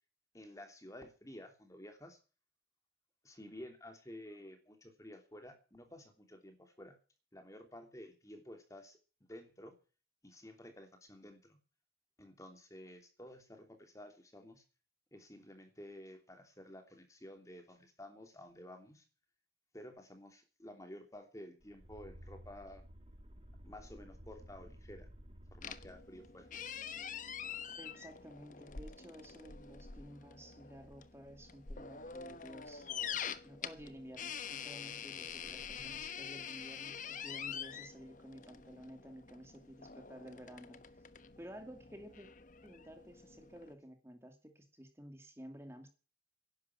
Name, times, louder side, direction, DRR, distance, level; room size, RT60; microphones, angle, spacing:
voice 1, 0.3-2.2 3.2-7.0 7.3-9.7 10.2-11.6 12.2-14.6 15.1-19.0 19.7-22.8 23.6-25.1 25.5-26.5 35.4-35.9, left 1 dB, 20° left, 5 dB, 2.9 m, -52 dB
sound 1, 21.6-26.5, equal, 35° right, 2.2 m, -54 dB
sound 2, 25.6-43.7, left 7 dB, 45° left, 1.1 m, -46 dB
voice 2, 27.8-32.9 33.4-41.0 41.4-42.3 42.6-45.9, equal, 15° right, 5 dB, 2.5 m, -53 dB
11.5 x 10.5 x 9.6 m, 0.35 s
head